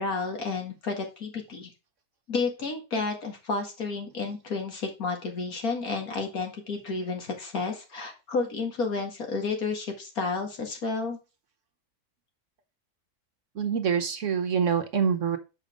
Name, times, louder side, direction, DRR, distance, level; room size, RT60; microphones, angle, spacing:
voice 1, 0.0-1.7 2.3-11.2, left 4 dB, 65° left, 3 dB, 2.3 m, -31 dB
voice 2, 13.6-15.4, right 7 dB, 60° right, 8 dB, 1.0 m, -25 dB
7.0 x 5.0 x 5.1 m, 0.29 s
omnidirectional pair, 1.6 m